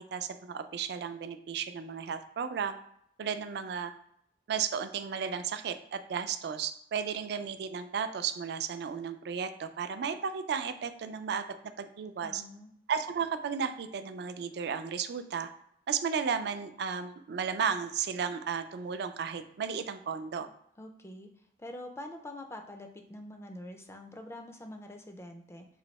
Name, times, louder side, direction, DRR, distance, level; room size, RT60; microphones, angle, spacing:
voice 1, 0.0-2.8 3.2-3.9 4.5-11.4 11.8-12.4 12.9-15.5 15.9-20.5, right 6 dB, 60° right, 9 dB, 0.3 m, -34 dB
voice 2, 12.2-12.7 20.8-21.3 21.6-25.7, left 1 dB, 15° left, 5 dB, 0.4 m, -45 dB
3.1 x 2.6 x 4.0 m, 0.71 s
head